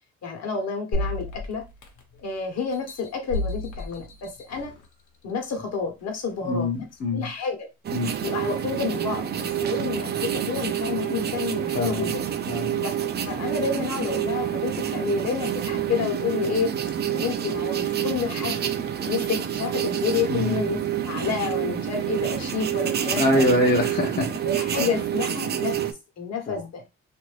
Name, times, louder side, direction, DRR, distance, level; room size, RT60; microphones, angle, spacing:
voice 1, 0.2-1.6 2.2-4.7 5.2-6.7 7.1-7.7 8.2-12.2 12.8-16.7 17.1-18.6 19.1-20.8 21.0-23.4 24.4-25.9 26.2-26.8, left 5 dB, 60° left, 1.0 m, -29 dB
sound 1, 0.9-2.2 2.7-4.9 5.4-5.5, left 1 dB, 85° left, 1.0 m, -32 dB
voice 2, 6.4-7.3 7.9-8.1 11.7-12.1 12.5-12.8 20.3-20.6 23.1-24.3 26.5-26.6, left 1 dB, 30° left, 0.6 m, -24 dB
sound 2, 7.8-25.9, right 10 dB, 35° right, 0.4 m, -28 dB
2.7 x 2.6 x 3.1 m
cardioid pair, 115°, 30 cm